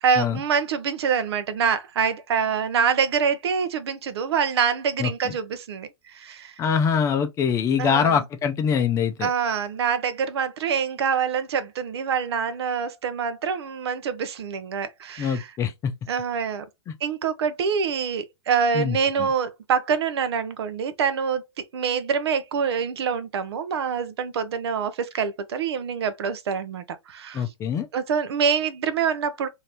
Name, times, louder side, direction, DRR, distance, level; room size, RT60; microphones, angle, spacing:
voice 1, 0.0-6.5 7.8-8.2 9.2-15.5 16.1-16.6 17.0-21.4 21.7-27.4 27.9-29.5, right 6 dB, 70° right, 0.7 m, -25 dB
voice 2, 5.0-5.3 6.6-9.3 15.2-15.9 16.9-17.0 18.7-19.3 27.3-27.9, left 7 dB, 20° left, 0.5 m, -24 dB
3.2 x 2.7 x 2.8 m
hypercardioid pair, 125°, 14 cm